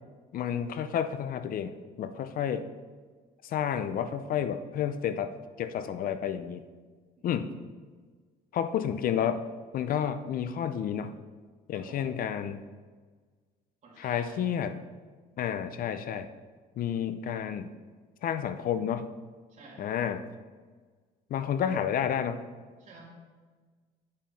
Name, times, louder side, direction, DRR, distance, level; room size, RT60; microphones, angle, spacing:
voice 1, 0.3-2.7 3.4-6.6 7.2-7.5 8.5-9.4 9.7-11.1 11.7-12.6 14.0-14.7 15.4-16.3 16.8-17.7 18.2-19.1 19.8-20.2 21.3-22.4, left 9 dB, 55° left, 11 dB, 0.5 m, -30 dB
voice 2, 7.2-7.5 11.7-12.1 13.8-14.5 19.5-20.0 22.8-23.1, right 3 dB, 45° right, -3 dB, 2.9 m, -51 dB
10.5 x 6.3 x 4.2 m, 1.4 s
cardioid pair, 110°, 17 cm